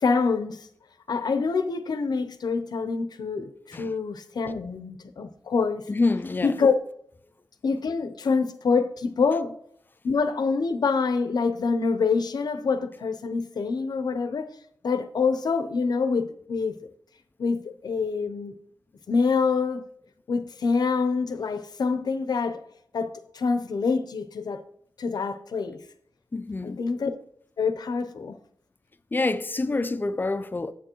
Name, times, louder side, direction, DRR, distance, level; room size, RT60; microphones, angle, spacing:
voice 1, 0.0-0.7 1.1-5.9 6.4-6.8 7.6-9.5 10.0-14.5 14.8-16.8 17.4-18.5 19.1-19.9 20.3-22.6 22.9-24.6 25.0-25.8 26.6-27.1 27.6-28.4, left 4 dB, 75° left, 0.6 m, -26 dB
voice 2, 5.9-6.5 26.3-26.8 29.1-30.7, left 3 dB, 30° left, 0.4 m, -27 dB
7.3 x 6.8 x 3.0 m
wide cardioid pair, 75°, 7 cm